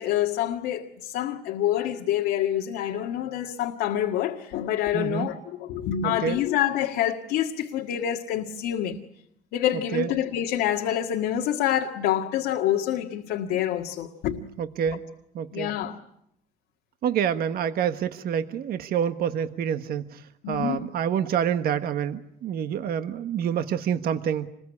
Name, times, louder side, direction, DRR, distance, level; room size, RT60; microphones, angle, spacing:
voice 1, 0.0-9.0 9.5-14.5 15.5-16.0 20.4-20.9, left 11 dB, 90° left, 1.8 m, -27 dB
voice 2, 4.9-5.3 6.0-6.4 9.9-10.1 14.6-15.0 15.3-15.7 17.0-24.5, right 8 dB, 65° right, 1.4 m, -27 dB
27.0 x 21.5 x 9.8 m
cardioid pair, 110°, 17 cm